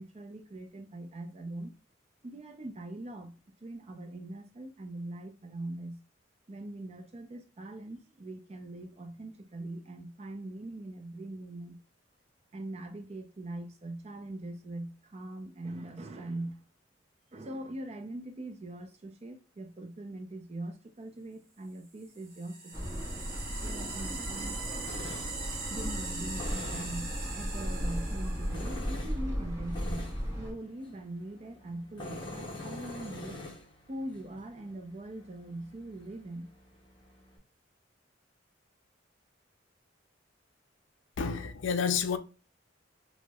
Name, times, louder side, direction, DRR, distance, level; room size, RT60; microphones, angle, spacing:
voice 1, 0.0-1.7 2.2-3.3 3.6-6.0 6.5-11.8 12.5-16.6 17.3-23.0 23.6-24.6 25.7-33.4 33.9-36.5, right 1 dB, 35° right, 0.5 m, -42 dB
sound 1, 22.0-28.8, right 3 dB, 50° right, 0.9 m, -41 dB
sound 2, 22.7-30.5, equal, 15° right, 0.8 m, -36 dB
Tools, 23.3-37.4, left 2 dB, 25° left, 0.7 m, -47 dB
voice 2, 41.2-42.2, left 6 dB, 80° left, 0.4 m, -29 dB
4.4 x 2.1 x 2.3 m
head